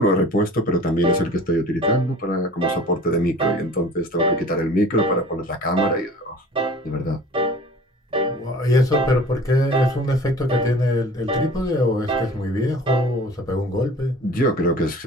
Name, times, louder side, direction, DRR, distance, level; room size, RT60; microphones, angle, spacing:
voice 1, 0.0-6.4 6.8-7.2 14.2-15.0, equal, 40° left, 0.7 m, -23 dB
sound 1, 1.0-1.3 1.8-2.1 2.6-2.9 3.4-3.7 4.2-4.5 5.0-5.3 5.8-6.1 6.5-6.8 7.3-7.6 8.1-8.4 8.9-9.2 9.7-10.0 10.5-10.8 11.3-11.6 12.1-12.4 12.9-13.2, right 1 dB, 25° right, 0.4 m, -24 dB
voice 2, 8.3-14.1, left 1 dB, 15° left, 1.0 m, -22 dB
2.8 x 2.1 x 2.8 m
head